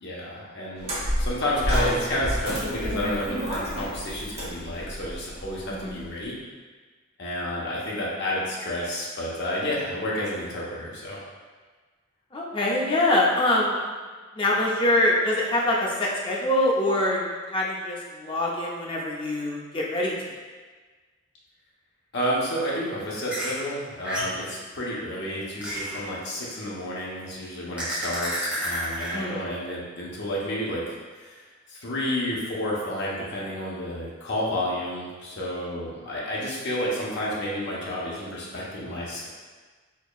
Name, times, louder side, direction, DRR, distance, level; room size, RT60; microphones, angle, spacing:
voice 1, 0.0-6.3 7.2-11.2 22.1-31.4 31.7-39.3, left 1 dB, 60° left, -5 dB, 0.9 m, -30 dB
sound 1, 0.8-6.0, equal, 30° right, 1.0 m, -29 dB
voice 2, 12.3-13.8 14.3-17.2 17.5-20.3 29.1-29.4, left 1 dB, 25° left, -3 dB, 0.6 m, -24 dB
sound 2, 23.3-23.6 24.0-24.4 25.6-26.1 27.8-29.1, equal, 5° right, 1.0 m, -30 dB
4.4 x 2.9 x 2.3 m, 1.4 s
head